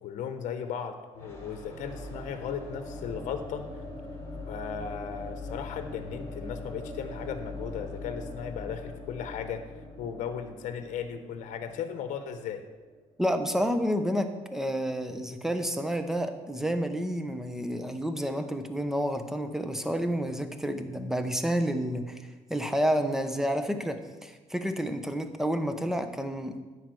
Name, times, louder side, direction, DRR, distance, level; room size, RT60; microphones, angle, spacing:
voice 1, 0.0-3.6 4.5-9.6 10.0-12.6, left 7 dB, 70° left, 8 dB, 0.9 m, -36 dB
sound 1, 1.1-12.9, left 2 dB, 20° left, 3.3 m, -41 dB
voice 2, 13.2-22.2 22.5-26.6, equal, 5° right, 8 dB, 1.0 m, -30 dB
10.0 x 4.8 x 7.8 m, 1.3 s
cardioid pair, 90°, 13 cm